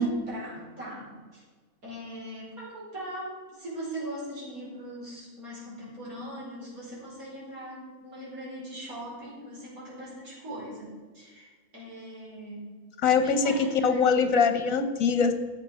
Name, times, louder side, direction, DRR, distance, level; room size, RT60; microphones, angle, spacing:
voice 1, 0.0-1.4 1.8-12.7 13.2-14.2, equal, 80° right, -6 dB, 5.3 m, -40 dB
voice 2, 13.0-15.3, left 5 dB, 65° left, 9 dB, 1.5 m, -23 dB
12.0 x 7.7 x 6.3 m, 1.4 s
omnidirectional pair, 1.5 m